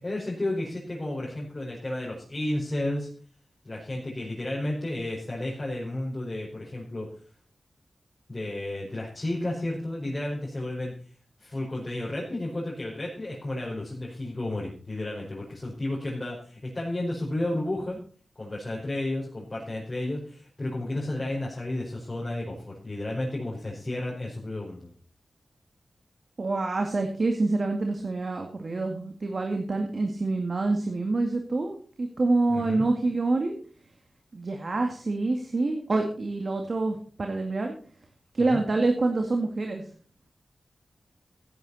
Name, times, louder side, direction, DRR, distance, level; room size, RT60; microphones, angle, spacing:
voice 1, 0.0-3.1 3.6-7.1 8.3-10.9 11.4-18.0 18.3-24.9 32.5-32.9 38.4-38.6, left 1 dB, 30° left, -4 dB, 5.0 m, -32 dB
voice 2, 26.4-33.5 34.3-37.7 38.3-39.8, right 3 dB, 55° right, 3 dB, 2.0 m, -27 dB
15.5 x 11.0 x 4.1 m, 0.42 s
wide cardioid pair, 70°, 0 cm